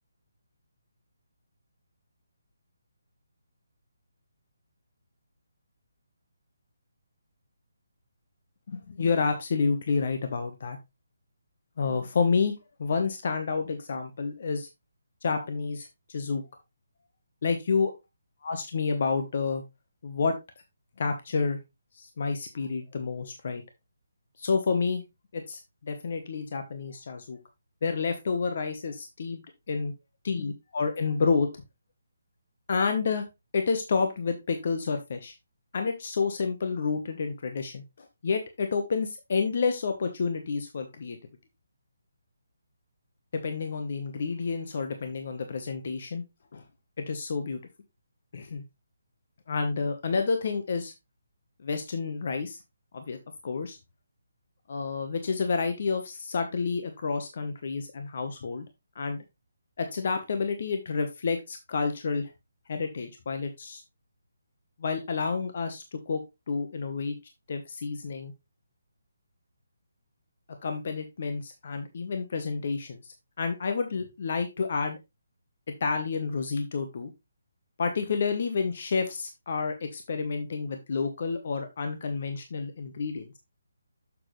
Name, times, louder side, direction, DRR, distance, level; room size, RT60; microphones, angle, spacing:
voice 1, 8.7-10.8 11.8-14.7 15.2-16.4 17.4-17.9 18.4-19.6 20.0-20.4 21.0-21.6 21.9-23.6 24.4-25.0 25.3-27.4 27.8-29.9 30.2-31.5 32.7-33.2 33.5-35.3 35.7-41.2 43.3-46.2 46.5-46.6 47.0-47.6 48.3-48.6 49.5-50.9 51.6-52.6 52.9-53.2 53.4-53.8 54.7-58.6 58.9-59.2 59.8-62.3 62.7-63.8 64.8-67.1 67.5-68.3 70.5-75.0 75.8-77.1 77.8-83.3, left 4 dB, 50° left, 6 dB, 1.0 m, -29 dB
7.1 x 6.1 x 3.2 m, 0.22 s
figure-of-eight pair, 150°, 0 cm